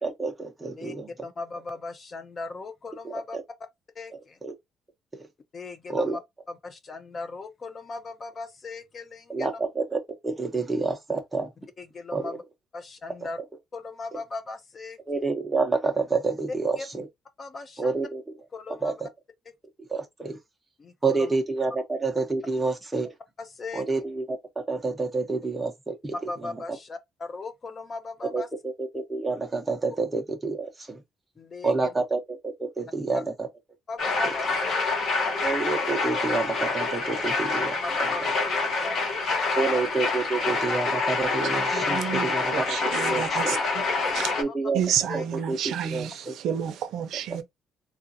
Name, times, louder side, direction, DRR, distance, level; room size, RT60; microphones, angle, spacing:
voice 1, 0.0-1.1 4.4-4.5 5.9-6.2 9.3-11.5 12.1-12.2 15.1-17.0 17.8-18.2 18.8-18.9 19.9-20.4 21.0-23.1 23.7-24.4 24.7-26.1 28.3-28.4 28.8-31.0 31.6-33.2 35.4-38.1 39.6-42.8 43.0-43.6 44.4-44.8 45.1-46.3, right 3 dB, 10° right, 0.8 m, -28 dB
voice 2, 1.2-3.4 4.0-4.4 5.5-6.2 6.5-9.5 11.8-12.4 12.7-13.4 13.7-15.0 16.8-16.9 17.4-18.1 18.5-19.0 20.8-21.3 23.4-23.9 26.1-28.5 31.4-31.9 33.1-33.2 33.9-35.2 37.8-38.3 38.6-39.8 42.0-42.4 43.6-43.7 44.0-44.5 45.1-45.2, left 3 dB, 30° left, 0.5 m, -38 dB
sound 1, 34.0-44.4, left 3 dB, 50° left, 1.0 m, -26 dB
voice 3, 41.7-43.6 44.1-44.3 44.7-47.4, right 9 dB, 70° right, 0.6 m, -30 dB
3.6 x 2.5 x 2.7 m
cardioid pair, 155°, 0 cm